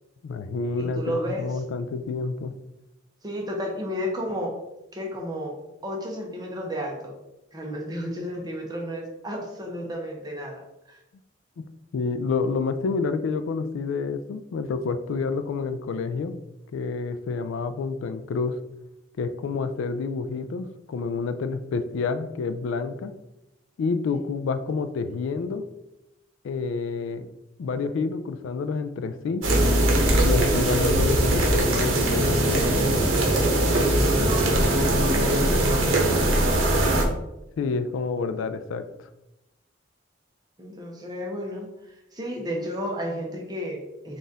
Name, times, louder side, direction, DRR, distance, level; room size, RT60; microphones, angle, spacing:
voice 1, 0.2-2.5 11.9-16.4 16.7-18.6 19.2-23.1 23.8-25.6 26.4-27.3 27.6-29.4 30.2-32.6 37.6-38.8, left 4 dB, 70° left, 10 dB, 0.3 m, -28 dB
voice 2, 0.8-1.5 3.2-4.6 4.9-5.6 5.8-7.2 7.5-11.0 34.1-36.3 40.6-41.7 42.1-44.2, equal, 20° right, 0 dB, 0.8 m, -32 dB
sound 1, 29.4-37.0, right 1 dB, 80° right, 0.8 m, -21 dB
3.9 x 2.5 x 3.9 m, 0.91 s
head